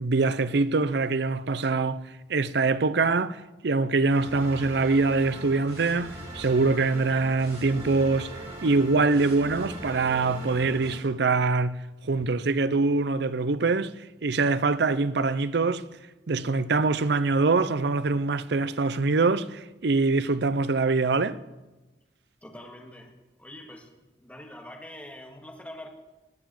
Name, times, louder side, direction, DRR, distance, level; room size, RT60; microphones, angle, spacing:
voice 1, 0.0-2.0 2.3-8.3 8.6-11.8 12.0-13.9 14.2-15.8 16.3-21.4, right 3 dB, 65° right, 0.6 m, -24 dB
sound 1, 4.1-11.0, right 1 dB, 35° right, 4.3 m, -40 dB
voice 2, 22.4-23.1 23.4-23.9 24.2-25.9, left 1 dB, 10° left, 1.9 m, -44 dB
19.5 x 7.1 x 7.6 m
head